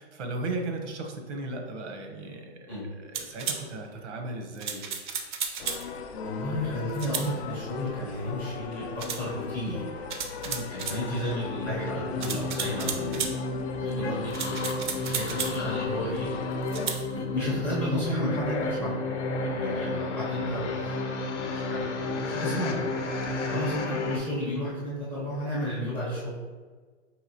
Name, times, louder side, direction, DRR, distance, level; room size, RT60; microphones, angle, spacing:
voice 1, 0.0-5.0 10.4-10.7 19.4-19.6 23.2-23.6, right 2 dB, 85° right, 3 dB, 0.9 m, -36 dB
sound 1, 3.1-3.6 4.6-5.9 6.9-7.3 9.0-9.2 10.1-11.0 12.2-13.4 14.3-15.6 16.7-17.0, right 6 dB, 45° right, 0.4 m, -33 dB
sound 2, 5.6-16.9, left 6 dB, 65° left, 0.5 m, -38 dB
voice 2, 6.2-9.9 10.7-13.2 13.8-16.3 17.1-19.0 19.6-21.0 21.5-22.8 23.5-26.3, left 1 dB, 5° left, -9 dB, 0.5 m, -32 dB
sound 3, 10.9-24.2, left 2 dB, 90° left, 0.8 m, -32 dB
4.7 x 2.9 x 2.8 m, 1.4 s
hypercardioid pair, 165°, 35 cm